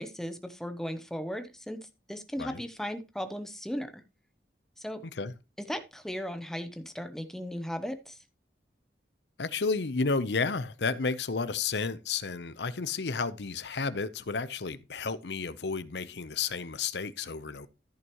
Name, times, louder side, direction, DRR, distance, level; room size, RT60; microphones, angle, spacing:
voice 1, 0.0-4.0 4.8-5.0 5.7-8.2, equal, 5° left, 0.8 m, -37 dB
voice 2, 9.4-17.7, left 4 dB, 75° left, 0.7 m, -32 dB
14.0 x 6.3 x 3.0 m
head